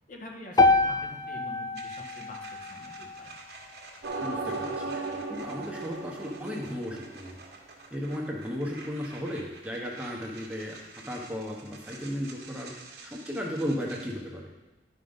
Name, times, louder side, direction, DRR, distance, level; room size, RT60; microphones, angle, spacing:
voice 1, 0.1-3.3, left 1 dB, 45° left, 0 dB, 1.5 m, -45 dB
sound 1, 0.6-4.7, left 3 dB, 20° left, 0.4 m, -28 dB
sound 2, 1.7-14.1, right 3 dB, 60° right, 1.5 m, -49 dB
sound 3, 4.0-7.3, right 3 dB, 80° right, 1.1 m, -36 dB
voice 2, 4.2-4.9 5.3-7.4 7.9-12.7 13.0-14.5, equal, 5° right, -2 dB, 1.1 m, -35 dB
11.0 x 5.3 x 5.5 m, 1.1 s
head